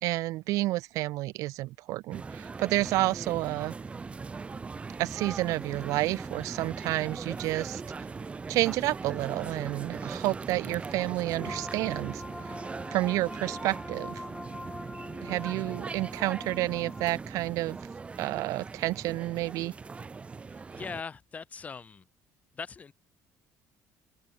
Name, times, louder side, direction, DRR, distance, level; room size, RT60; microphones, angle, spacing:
voice 1, 0.0-3.7 5.0-7.8 8.5-12.2 12.9-14.2 15.2-17.8 18.2-19.7, right 18 dB, 70° right, 0.4 m, -30 dB
sound 1, 2.1-21.0, right 4 dB, 20° right, 2.4 m, -40 dB
sound 2, 11.4-17.1, left 2 dB, 5° left, 0.4 m, -43 dB
voice 2, 20.5-22.1 22.5-22.9, left 5 dB, 25° left, 1.3 m, -41 dB
open air
cardioid pair, 140°, 6 cm